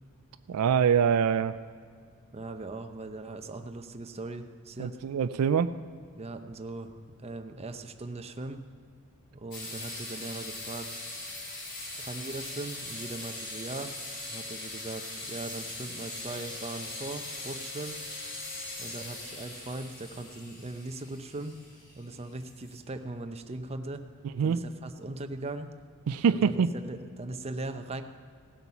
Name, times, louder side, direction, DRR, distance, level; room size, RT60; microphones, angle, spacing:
voice 1, 0.5-1.6 4.8-5.7 24.4-24.6 26.1-26.7, right 7 dB, 75° right, 12 dB, 0.4 m, -24 dB
voice 2, 2.3-5.0 6.1-6.9 7.2-8.6 9.3-10.9 12.0-13.9 14.3-18.0 18.8-21.6 22.0-24.0 24.4-25.7 26.3-28.0, right 2 dB, 30° right, 7 dB, 0.7 m, -39 dB
sound 1, 9.5-22.9, left 2 dB, 55° left, 3.5 m, -40 dB
17.0 x 8.1 x 5.8 m, 2.1 s
head